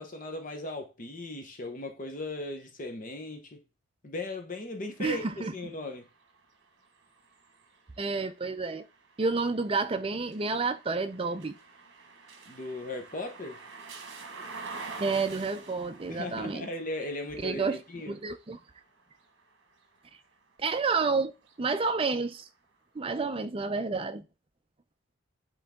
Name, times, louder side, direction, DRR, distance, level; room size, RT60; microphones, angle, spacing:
voice 1, 0.0-3.6 4.0-5.2 5.5-6.1 12.5-13.6 16.1-18.2, left 2 dB, 40° left, 0.9 m, -37 dB
sound 1, 4.8-20.7 21.3-22.5, right 4 dB, 60° right, 1.4 m, -49 dB
voice 2, 5.0-5.5 8.0-8.8 9.2-11.6 15.0-16.7 17.4-17.8 18.1-18.6 20.6-21.3 21.6-22.5 22.9-24.2, right 4 dB, 25° right, 0.5 m, -30 dB
8.0 x 3.8 x 3.6 m
head